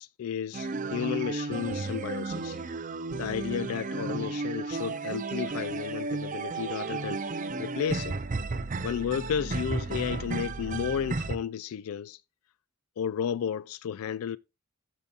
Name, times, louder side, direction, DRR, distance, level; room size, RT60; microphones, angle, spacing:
voice 1, 0.0-2.6 3.1-8.2 8.8-12.2 13.0-14.4, left 8 dB, 70° left, 0.3 m, -33 dB
sound 1, 0.5-11.4, right 3 dB, 35° right, 0.6 m, -33 dB
14.0 x 5.6 x 2.4 m
head